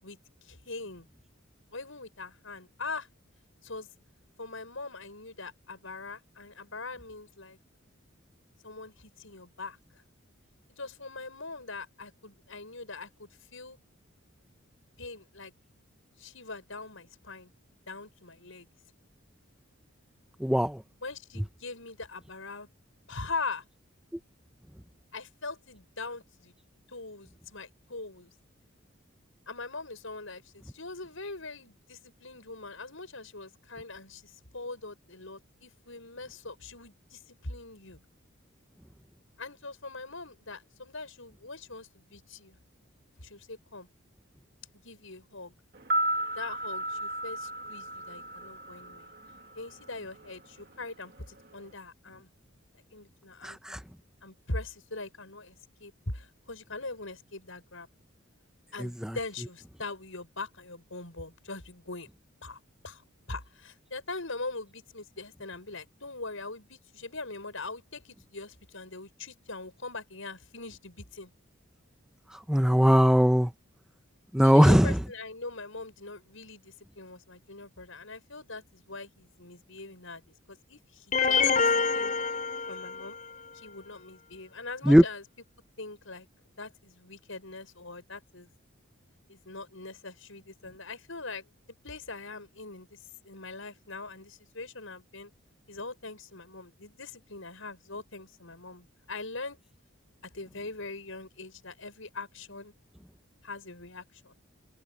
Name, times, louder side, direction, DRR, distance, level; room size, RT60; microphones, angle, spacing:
voice 1, 0.0-1.1 1.7-3.1 3.6-3.9 4.4-7.6 8.6-9.8 10.8-13.8 15.0-15.5 16.2-17.5 17.9-18.7 21.0-22.7 23.1-23.6 25.1-26.5 26.9-28.3 29.5-38.0 39.4-42.6 43.2-43.9 44.8-45.5 46.3-49.1 49.5-52.3 52.9-53.8 54.2-57.9 58.7-62.1 62.4-71.3 74.4-80.2 80.5-82.1 82.7-83.2 83.5-85.2 85.8-86.3 86.6-88.5 89.3-91.5 91.8-95.3 95.7-99.6 100.2-102.7 103.4-104.3, left 3 dB, 70° left, 6.6 m, -42 dB
voice 2, 20.4-20.8 53.4-53.8 58.8-59.1 72.3-73.5 74.3-75.0 84.9-85.0, equal, 5° right, 0.7 m, -20 dB
sound 1, 45.7-49.9 50.2-50.3, right 1 dB, 50° right, 2.1 m, -34 dB
sound 2, 81.1-83.2, left 5 dB, 40° left, 3.7 m, -26 dB
head